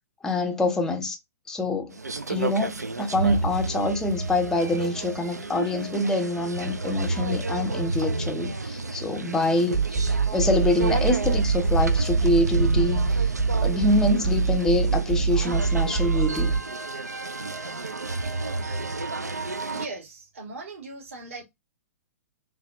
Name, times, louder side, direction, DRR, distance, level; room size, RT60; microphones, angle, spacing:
voice 1, 0.2-1.2 1.5-2.0 2.3-13.3 13.5-16.5, left 2 dB, 5° left, 0.5 m, -25 dB
sound 1, 1.9-19.9, right 3 dB, 80° right, 0.4 m, -31 dB
sound 2, 9.7-16.6, right 5 dB, 35° right, 1.2 m, -24 dB
voice 2, 19.7-21.4, right 3 dB, 55° right, 1.4 m, -39 dB
3.3 x 2.2 x 2.5 m
figure-of-eight pair, 115°, 9 cm